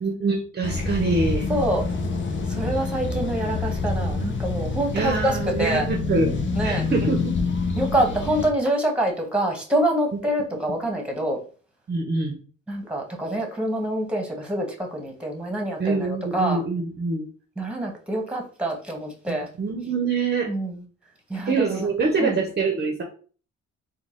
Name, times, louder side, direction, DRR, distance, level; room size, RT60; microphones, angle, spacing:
voice 1, 0.0-1.5 4.9-7.4 11.9-12.4 15.8-17.3 19.6-20.5 21.5-23.0, right 4 dB, 35° right, 3 dB, 0.7 m, -25 dB
sound 1, 0.6-8.5, left 3 dB, 40° left, 0.7 m, -27 dB
voice 2, 1.5-1.8 2.5-5.9 6.5-6.9 7.8-11.4 12.7-16.6 17.6-19.5 20.5-20.8 21.3-21.5 22.2-22.4, right 1 dB, 5° right, 2 dB, 1.2 m, -26 dB
3.9 x 2.2 x 3.7 m, 0.40 s
cardioid pair, 90°, 30 cm